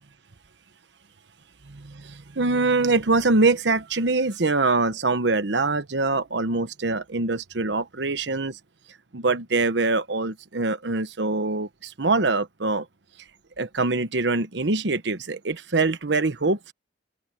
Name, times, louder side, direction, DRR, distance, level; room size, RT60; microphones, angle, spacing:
voice 1, 1.7-8.6 9.1-12.8 13.6-16.7, right 3 dB, 70° right, 1.1 m, -24 dB
open air
head